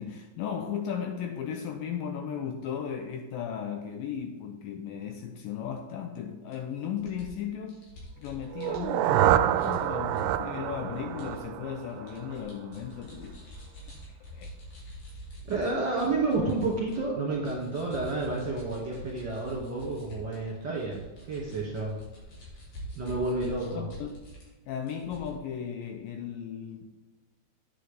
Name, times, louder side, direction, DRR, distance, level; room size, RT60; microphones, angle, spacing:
voice 1, 0.0-7.8 8.2-13.4 14.3-14.5 23.7-24.2 24.7-26.9, left 8 dB, 80° left, 5 dB, 2.2 m, -36 dB
sound 1, 6.5-6.6 7.0-9.2 9.6-10.2 11.2-11.4 11.8-17.0 17.3-24.5 24.8-25.3, equal, 55° left, 4.6 m, -46 dB
sound 2, 8.5-12.5, right 12 dB, 85° right, 2.5 m, -27 dB
voice 2, 15.5-21.0 21.3-22.0 23.0-23.8, right 3 dB, 35° right, -5 dB, 2.2 m, -30 dB
9.3 x 8.6 x 3.5 m, 1.2 s
omnidirectional pair, 4.6 m